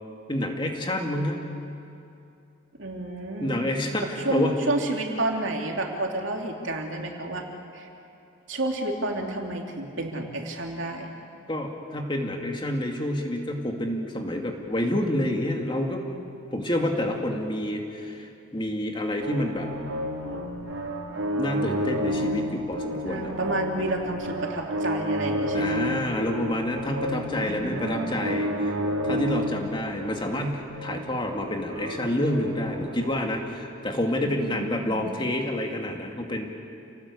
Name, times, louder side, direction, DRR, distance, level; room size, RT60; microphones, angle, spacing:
voice 1, 0.3-1.4 3.4-4.6 11.5-16.0 16.5-19.7 21.3-23.3 25.5-28.7 29.0-36.4, left 1 dB, 25° left, 2 dB, 2.4 m, -28 dB
voice 2, 2.8-3.7 4.2-7.4 7.7-7.9 8.5-11.1 23.0-26.0 27.4-28.6 34.2-35.1, right 2 dB, 70° right, 1 dB, 3.2 m, -30 dB
sound 1, 19.2-33.2, equal, 85° right, 3.9 m, -31 dB
29.0 x 18.5 x 8.4 m, 2.6 s
head